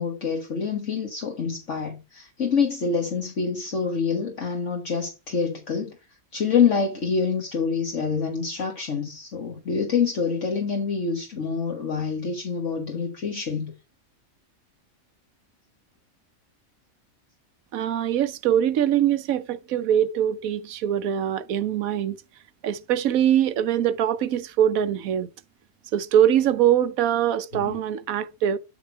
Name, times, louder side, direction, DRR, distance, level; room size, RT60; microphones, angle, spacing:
voice 1, 0.0-6.0 6.3-13.7 27.6-27.7, left 5 dB, 60° left, 1.8 m, -26 dB
voice 2, 17.7-22.2 22.6-25.3 25.9-28.6, right 10 dB, 85° right, 1.2 m, -23 dB
12.0 x 4.2 x 4.5 m
omnidirectional pair, 1.4 m